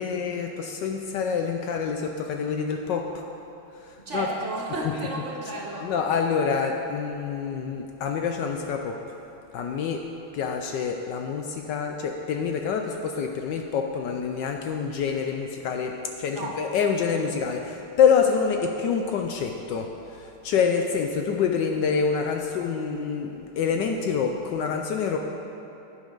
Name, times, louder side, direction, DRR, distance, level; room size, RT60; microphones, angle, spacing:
voice 1, 0.0-3.1 4.1-4.3 5.8-9.0 9.5-10.0 10.3-19.9 20.1-25.2, left 6 dB, 75° left, 3 dB, 1.0 m, -26 dB
voice 2, 4.0-5.9 16.3-16.6, right 2 dB, 55° right, -1 dB, 0.8 m, -32 dB
11.5 x 8.5 x 3.9 m, 2.9 s
omnidirectional pair, 2.3 m